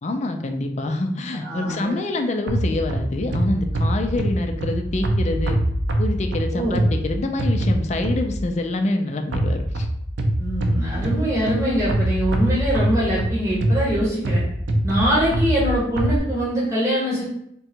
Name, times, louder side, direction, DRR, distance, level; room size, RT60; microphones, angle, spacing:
voice 1, 0.0-5.6 6.0-9.9, left 2 dB, 40° left, 5 dB, 0.4 m, -26 dB
voice 2, 1.4-1.9 6.5-6.8 10.4-14.4 14.8-17.2, equal, 15° right, -7 dB, 1.2 m, -23 dB
sound 1, 2.5-8.5 9.3-16.2, right 1 dB, 90° right, 0.6 m, -24 dB
3.7 x 2.3 x 4.3 m, 0.72 s
head